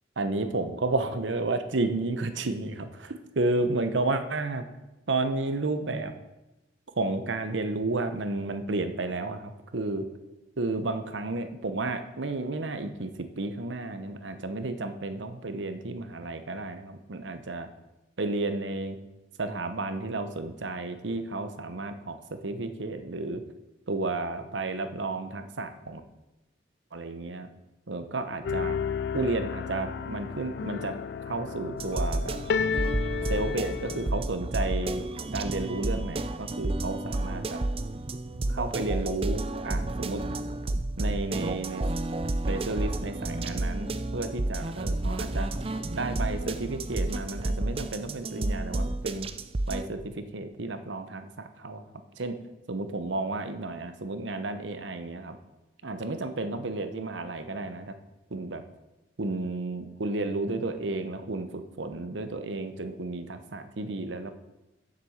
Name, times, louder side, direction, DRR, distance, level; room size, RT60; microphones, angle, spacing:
voice 1, 0.2-4.7 5.1-6.1 7.0-10.1 10.6-17.7 18.2-19.0 19.4-22.2 22.4-23.4 23.9-26.0 26.9-27.5 27.9-28.8 29.1-31.0 31.3-32.4 33.3-35.1 35.3-37.6 38.5-40.2 41.0-41.9 42.5-45.5 45.9-49.3 49.7-51.8 52.2-52.4 52.7-55.4 55.8-57.9 58.3-58.6 59.2-61.5 61.8-64.3, right 2 dB, 75° right, 9 dB, 0.9 m, -32 dB
sound 1, 28.4-34.2, left 6 dB, 60° left, 0.3 m, -32 dB
sound 2, 31.8-49.8, right 2 dB, 30° right, 0.5 m, -31 dB
7.8 x 6.8 x 7.2 m, 1.0 s
head